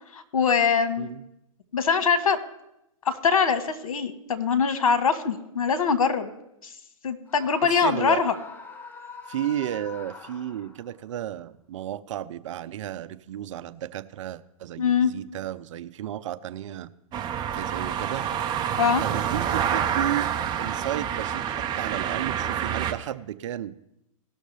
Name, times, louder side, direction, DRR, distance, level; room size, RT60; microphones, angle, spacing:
voice 1, 0.1-1.1 1.7-2.4 3.0-6.3 6.6-6.7 7.0-8.3 14.8-15.1 18.8-19.0, left 6 dB, 75° left, 8 dB, 1.4 m, -23 dB
Screaming, 7.3-11.0, left 5 dB, 10° left, 0.7 m, -43 dB
voice 2, 7.6-8.2 9.3-16.9 17.5-18.3 19.0-20.3 20.6-23.7, right 12 dB, 60° right, 13 dB, 0.6 m, -33 dB
sound 1, 17.1-22.9, right 9 dB, 25° right, 0.8 m, -27 dB
18.0 x 6.4 x 3.3 m, 0.83 s
hypercardioid pair, 120°, 18 cm